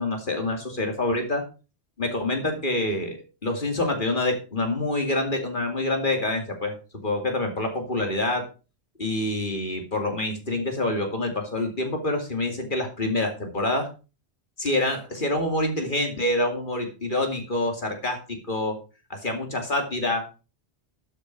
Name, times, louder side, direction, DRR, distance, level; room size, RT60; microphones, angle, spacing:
voice 1, 0.0-1.4 2.0-3.2 3.4-8.5 9.0-13.9 14.6-18.8 19.1-20.2, left 2 dB, 50° left, 3 dB, 2.8 m, -26 dB
12.5 x 7.2 x 4.8 m, 0.32 s
omnidirectional pair, 1.1 m